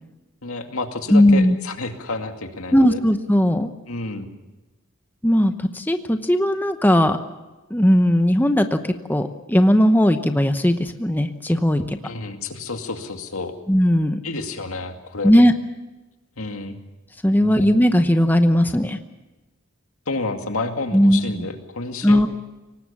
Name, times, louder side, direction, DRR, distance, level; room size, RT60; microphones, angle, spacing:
voice 1, 0.4-3.0 3.9-4.3 12.0-13.5 14.2-15.3 16.4-16.8 17.4-17.7 20.1-22.3, left 3 dB, 85° left, 5 dB, 2.3 m, -30 dB
voice 2, 1.1-1.6 2.7-3.7 5.2-7.2 7.7-12.0 13.7-14.2 15.2-15.5 17.2-19.0 20.9-21.5 22.0-22.3, equal, 10° left, 7 dB, 0.8 m, -17 dB
23.5 x 19.0 x 7.2 m, 1.1 s
head